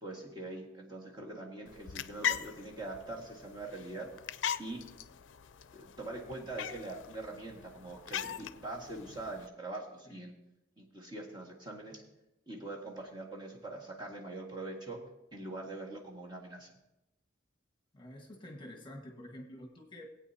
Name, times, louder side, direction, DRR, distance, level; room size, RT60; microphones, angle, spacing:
voice 1, 0.0-4.1 4.6-4.8 5.7-10.3 10.8-12.0 12.5-15.0 15.3-16.7, right 2 dB, 25° right, -3 dB, 1.8 m, -43 dB
sound 1, 1.7-9.5, left 9 dB, 85° left, 0.4 m, -40 dB
voice 2, 17.9-20.1, left 1 dB, 25° left, 2 dB, 1.5 m, -48 dB
19.5 x 8.6 x 2.8 m, 0.92 s
head